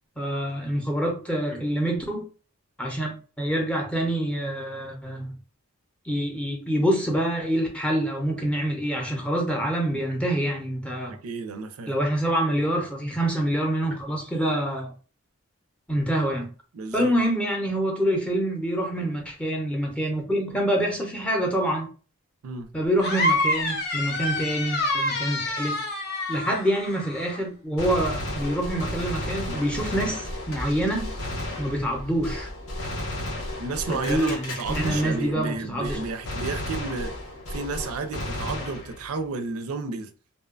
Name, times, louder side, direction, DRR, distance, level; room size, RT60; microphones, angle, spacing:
voice 1, 0.2-2.2 2.8-5.4 6.0-11.2 11.9-14.9 15.9-16.5 16.9-21.9 22.7-25.8 26.3-31.1 31.6-32.5 33.9-36.0, right 1 dB, 5° left, 0.5 m, -26 dB
voice 2, 11.1-11.9 16.7-17.1 22.4-22.7 33.6-37.1 37.5-40.1, right 4 dB, 90° right, 0.4 m, -32 dB
sound 1, 23.0-27.4, left 1 dB, 50° left, 0.6 m, -27 dB
Gunshot gunfire, 27.8-35.6 35.8-39.2, left 1 dB, 75° left, 0.9 m, -33 dB
2.7 x 2.1 x 2.4 m
head